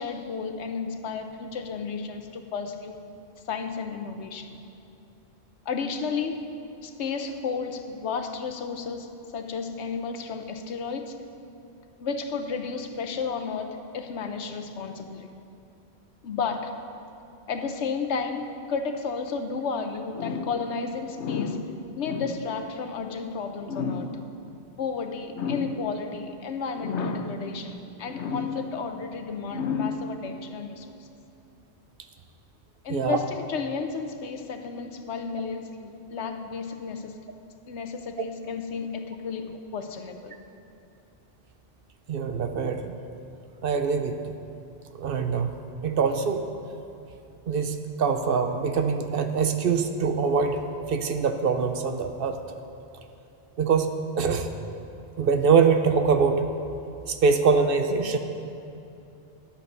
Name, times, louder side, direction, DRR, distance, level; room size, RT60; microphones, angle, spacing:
voice 1, 0.0-3.0 3.5-4.6 5.7-6.5 6.8-11.2 12.0-15.3 16.2-16.7 17.5-24.2 24.8-30.9 32.8-37.2 37.7-40.3, left 5 dB, 85° left, 6 dB, 1.1 m, -32 dB
voice 2, 42.1-42.9 43.6-44.2 44.9-45.5 45.8-46.4 47.5-52.4 53.6-54.5 55.2-56.5 57.1-58.2, right 5 dB, 60° right, 7 dB, 0.8 m, -24 dB
11.5 x 8.4 x 5.4 m, 2.8 s
omnidirectional pair, 1.1 m